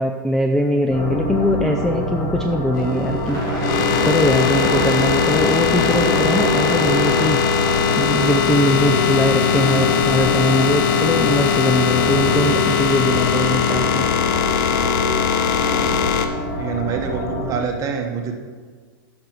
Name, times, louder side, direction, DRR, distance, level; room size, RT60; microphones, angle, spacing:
voice 1, 0.0-14.1, equal, 5° left, 3 dB, 0.4 m, -21 dB
sound 1, 0.9-17.6, equal, 25° left, 2.6 m, -25 dB
sound 2, 2.8-16.3, left 7 dB, 50° left, 0.8 m, -20 dB
voice 2, 16.6-18.3, right 5 dB, 30° right, 2 dB, 1.3 m, -25 dB
9.2 x 6.2 x 4.7 m, 1.5 s
hypercardioid pair, 135°, 12 cm